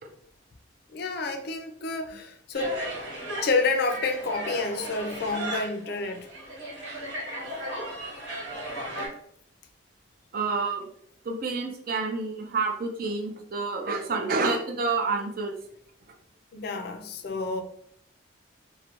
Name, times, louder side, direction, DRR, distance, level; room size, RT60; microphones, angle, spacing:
voice 1, 0.9-2.8 3.4-6.3 16.5-17.6, left 3 dB, 55° left, 0.3 m, -29 dB
sound 1, 2.5-9.1, right 1 dB, 75° right, 1.1 m, -36 dB
voice 2, 10.3-10.9 11.2-15.6, right 4 dB, 50° right, 0.4 m, -28 dB
2.4 x 2.1 x 2.9 m
head